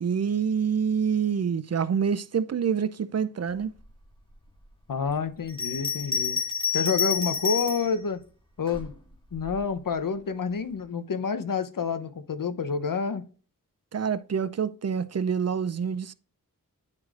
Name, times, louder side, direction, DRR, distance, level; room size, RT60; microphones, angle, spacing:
voice 1, 0.0-3.7 13.9-16.1, right 7 dB, 50° right, 0.4 m, -26 dB
voice 2, 4.9-6.4 6.7-8.2 8.6-8.9 9.3-13.2, left 5 dB, 75° left, 0.8 m, -28 dB
Bell, 5.5-7.9 8.7-9.6, left 6 dB, 15° left, 1.7 m, -29 dB
9.5 x 4.8 x 2.4 m
wide cardioid pair, 65°, 33 cm